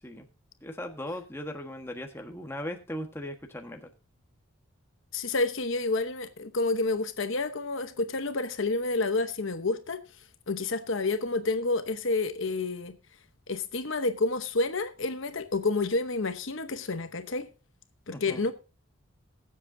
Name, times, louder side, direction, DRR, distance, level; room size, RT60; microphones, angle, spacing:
voice 1, 0.6-3.9 18.1-18.4, left 1 dB, 10° left, 1.4 m, -38 dB
voice 2, 5.1-10.0 10.5-13.0 13.5-17.5 18.1-18.5, left 3 dB, 60° left, 0.9 m, -29 dB
21.0 x 7.7 x 2.7 m
head